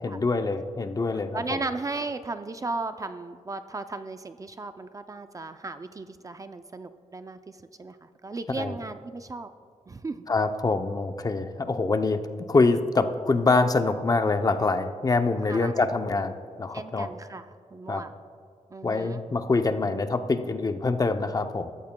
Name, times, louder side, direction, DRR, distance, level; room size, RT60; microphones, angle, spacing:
voice 1, 0.0-1.4 8.6-8.7 10.3-12.2 12.5-16.3 16.6-17.1 17.9-18.0 18.8-21.7, left 3 dB, 30° left, 8 dB, 0.6 m, -25 dB
voice 2, 1.3-9.5 9.9-10.2 11.6-12.0 15.5-15.8 16.7-18.1 18.7-19.2, right 3 dB, 25° right, 9 dB, 0.4 m, -36 dB
22.0 x 14.5 x 2.2 m, 2.4 s
wide cardioid pair, 135°, 13 cm